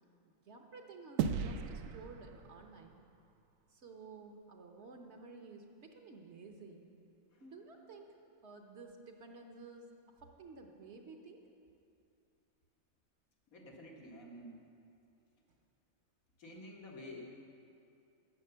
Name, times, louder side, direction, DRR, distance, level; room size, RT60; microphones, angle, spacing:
voice 1, 0.2-3.0 3.7-6.9 7.4-8.2 8.4-9.9 10.2-11.4, right 4 dB, 55° right, 3 dB, 1.2 m, -53 dB
sound 1, 1.2-3.8, right 7 dB, 75° right, 0.9 m, -38 dB
voice 2, 13.5-14.6 16.4-17.3, left 1 dB, 85° left, -1 dB, 2.0 m, -50 dB
12.0 x 7.9 x 6.7 m, 2.5 s
omnidirectional pair, 1.4 m